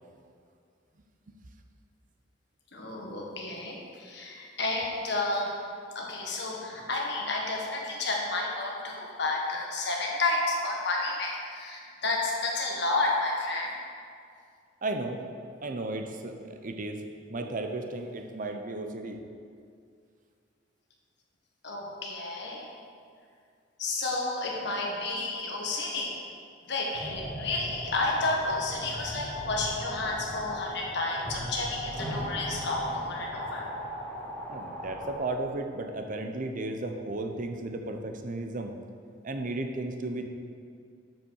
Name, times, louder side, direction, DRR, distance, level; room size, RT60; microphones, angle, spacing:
voice 1, 2.7-5.6 5.9-13.7 21.6-22.7 23.8-26.2 26.7-33.7, left 2 dB, 65° left, -1 dB, 1.5 m, -31 dB
voice 2, 14.8-15.2 15.6-17.0 17.3-19.2 34.5-38.8 39.2-40.3, right 2 dB, 45° right, 5 dB, 0.7 m, -34 dB
sound 1, 26.9-35.2, equal, 10° left, 1.7 m, -38 dB
7.4 x 5.6 x 6.4 m, 2.3 s
head